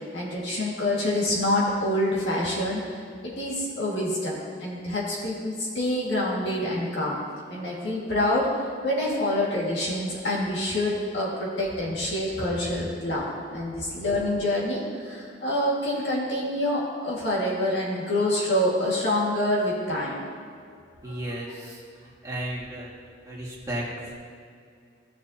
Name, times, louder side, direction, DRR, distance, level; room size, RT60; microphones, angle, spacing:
voice 1, 0.1-2.8 3.2-7.2 7.5-8.5 8.8-20.1 21.0-21.2, left 1 dB, 70° left, -5 dB, 2.1 m, -26 dB
voice 2, 21.0-22.9 23.3-24.1, right 1 dB, 20° right, -6 dB, 2.1 m, -34 dB
15.5 x 6.9 x 2.9 m, 2.3 s
head